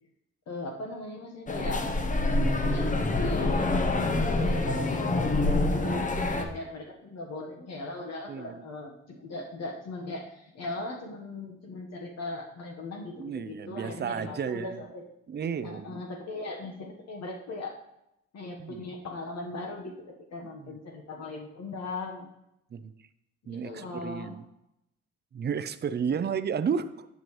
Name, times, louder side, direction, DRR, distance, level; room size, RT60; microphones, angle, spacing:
voice 1, 0.5-1.9 2.6-3.8 4.2-15.0 15.6-17.7 18.3-22.3 23.4-24.4 26.0-26.6, left 2 dB, 60° left, 1 dB, 1.3 m, -39 dB
sound 1, 1.5-6.5, left 2 dB, 25° left, 0.9 m, -26 dB
voice 2, 13.2-14.8 15.3-16.0 18.6-18.9 20.6-20.7 22.7-22.9 23.5-24.4 25.3-27.1, right 7 dB, 35° right, 13 dB, 0.5 m, -32 dB
10.5 x 6.9 x 3.1 m, 0.84 s
cardioid pair, 90°, 30 cm